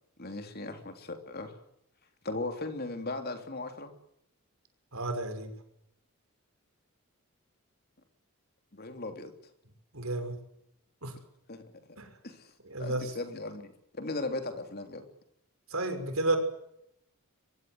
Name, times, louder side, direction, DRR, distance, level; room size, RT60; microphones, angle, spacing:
voice 1, 0.2-1.6 2.2-3.9 8.7-9.3 11.5-11.6 11.9-12.0 12.2-12.5 12.8-15.0, left 2 dB, 45° left, 6 dB, 3.3 m, -37 dB
voice 2, 4.9-5.5 9.9-10.4 11.0-11.1 12.0-12.1 12.7-13.1 15.7-16.4, right 2 dB, 75° right, 7 dB, 5.9 m, -31 dB
24.0 x 23.5 x 8.0 m, 0.77 s
head